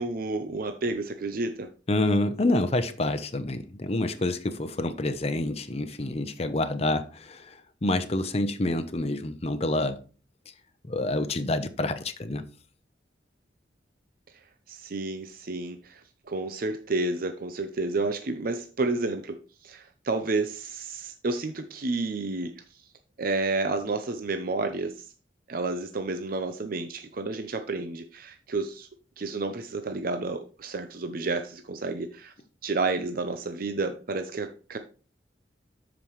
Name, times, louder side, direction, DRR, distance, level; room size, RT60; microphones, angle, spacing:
voice 1, 0.0-1.7 14.7-16.0 16.3-19.4 19.6-22.5 23.2-25.1 25.5-28.9 29.2-32.3 32.6-34.8, right 3 dB, 55° right, 0.7 m, -30 dB
voice 2, 1.9-10.0 10.8-12.5, left 2 dB, 35° left, 0.7 m, -28 dB
12.5 x 5.1 x 3.1 m
head